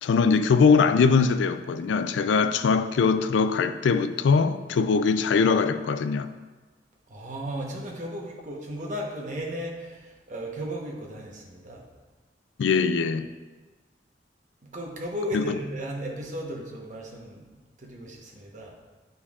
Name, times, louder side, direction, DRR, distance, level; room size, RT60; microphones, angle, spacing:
voice 1, 0.0-6.3 12.6-13.3 15.3-15.4, left 5 dB, 85° left, 0.3 m, -22 dB
voice 2, 7.1-11.9 14.6-18.8, equal, 45° right, 1.0 m, -35 dB
8.2 x 5.4 x 2.4 m
head